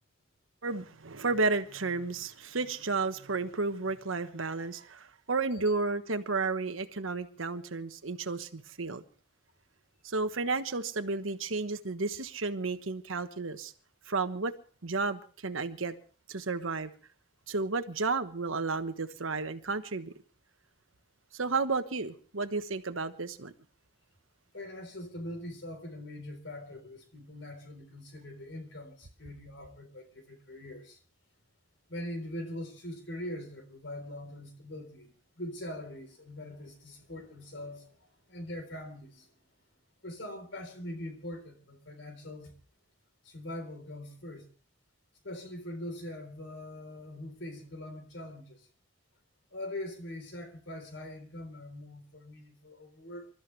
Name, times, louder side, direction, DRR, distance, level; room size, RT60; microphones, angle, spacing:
voice 1, 0.6-9.0 10.0-13.7 14.1-14.5 14.8-16.0 16.3-16.9 17.5-20.1 21.3-23.5, right 3 dB, 85° right, 10 dB, 1.3 m, -32 dB
voice 2, 24.5-31.0 31.9-35.1 35.4-39.3 40.0-42.5 43.2-44.5 45.2-48.7 49.5-53.3, left 1 dB, 65° left, 7 dB, 3.9 m, -42 dB
27.0 x 13.5 x 3.3 m, 0.40 s
head